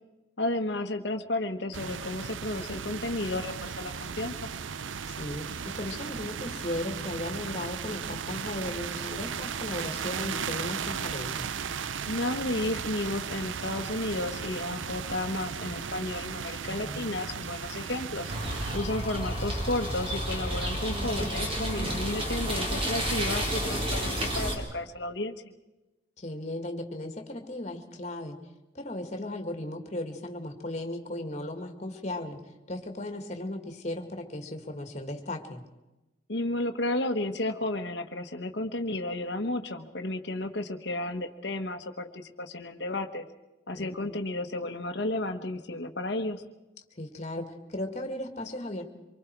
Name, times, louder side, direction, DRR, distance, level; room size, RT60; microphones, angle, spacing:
voice 1, 0.4-4.5 12.1-18.3 18.7-25.4 36.3-43.2 43.7-46.4, left 2 dB, 60° left, 5 dB, 1.4 m, -32 dB
sound 1, 1.7-18.8, right 6 dB, 85° right, 0.6 m, -36 dB
voice 2, 5.1-11.5 16.7-17.1 26.2-28.4 28.7-35.6 43.7-44.2 47.0-48.9, left 1 dB, 35° left, 5 dB, 2.1 m, -36 dB
sound 2, 18.3-24.6, equal, 30° right, 3.6 m, -30 dB
25.5 x 24.0 x 4.7 m, 1.1 s
head